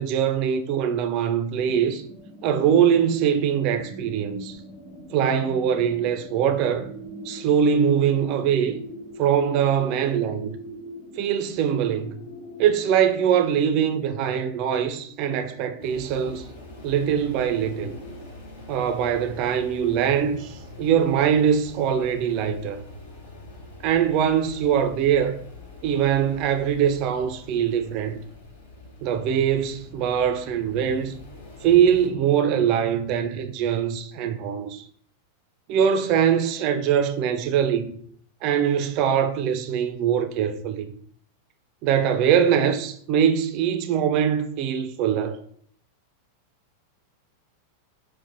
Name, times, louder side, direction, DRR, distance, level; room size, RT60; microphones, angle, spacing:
voice 1, 0.0-2.0 2.4-4.6 5.1-6.9 7.2-8.8 9.2-10.6 11.2-12.2 12.6-16.5 16.8-18.0 18.7-22.8 23.8-25.3 25.8-28.2 29.0-31.2 31.6-34.9 35.7-38.0 38.4-40.9 41.8-45.4, right 8 dB, 40° right, 0.3 m, -22 dB
sound 1, 1.6-18.3, equal, 25° left, 1.1 m, -43 dB
sound 2, 15.8-32.1, left 3 dB, 55° left, 0.5 m, -44 dB
4.0 x 2.1 x 2.5 m
figure-of-eight pair, 90°, 0 cm